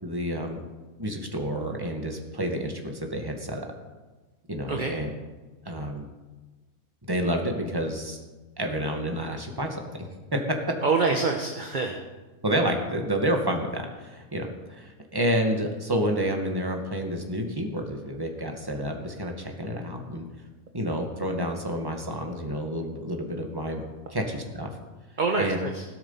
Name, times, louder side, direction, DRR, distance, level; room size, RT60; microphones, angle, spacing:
voice 1, 0.0-0.6 1.0-3.7 4.5-5.1 5.7-6.1 7.1-8.2 8.6-10.6 12.4-20.3 20.7-23.8 24.1-24.7 25.4-25.6, equal, 15° right, 2 dB, 1.9 m, -29 dB
voice 2, 10.8-12.0 25.2-25.8, right 4 dB, 35° right, 2 dB, 1.3 m, -26 dB
17.0 x 12.0 x 5.7 m, 1.2 s
omnidirectional pair, 1.5 m